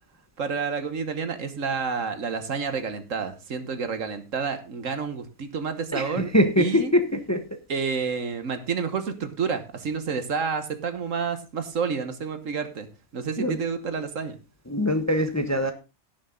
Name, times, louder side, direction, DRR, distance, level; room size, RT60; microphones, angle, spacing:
voice 1, 0.4-6.3 6.6-6.9 7.7-12.9 13.1-14.4, right 5 dB, 60° right, 9 dB, 1.6 m, -29 dB
voice 2, 5.9-7.6 13.4-13.6 14.7-15.7, left 1 dB, 15° left, 7 dB, 0.9 m, -23 dB
17.0 x 6.6 x 3.8 m, 0.29 s
omnidirectional pair, 1.5 m